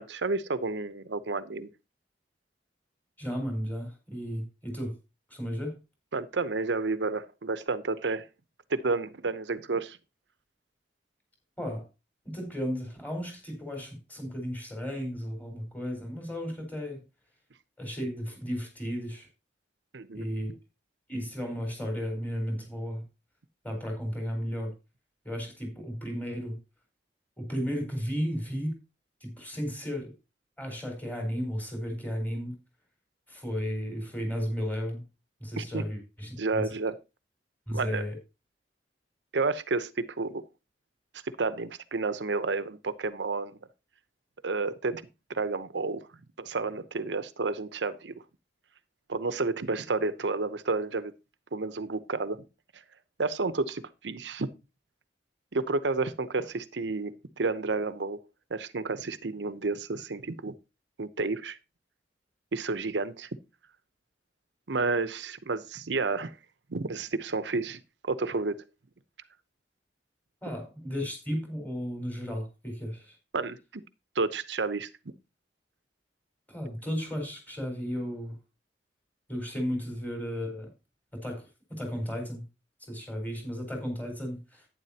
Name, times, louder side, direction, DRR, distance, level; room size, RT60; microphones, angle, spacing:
voice 1, 0.0-1.7 6.1-8.3 8.7-10.0 19.9-20.3 35.6-35.8 36.4-37.0 37.7-38.0 39.3-40.4 41.2-43.6 44.4-45.0 45.3-46.1 46.4-48.2 49.1-51.1 51.5-52.4 52.7-52.8 53.2-54.5 55.5-58.2 58.5-60.5 61.0-61.6 62.5-63.3 64.7-66.4 66.7-68.6 73.3-73.8 74.1-74.9, right 3 dB, 85° right, 0.8 m, -31 dB
voice 2, 3.2-4.9 5.3-5.8 11.6-11.8 12.2-17.0 17.8-19.3 20.1-20.5 21.1-23.0 23.6-24.7 25.2-26.6 27.4-28.8 29.2-30.1 30.6-32.5 33.3-35.0 35.4-36.7 37.7-38.2 70.4-73.2 76.5-78.4 79.3-80.7 81.1-81.4 81.7-82.4 82.8-84.7, equal, 10° left, 4.4 m, -34 dB
11.0 x 9.9 x 2.9 m
head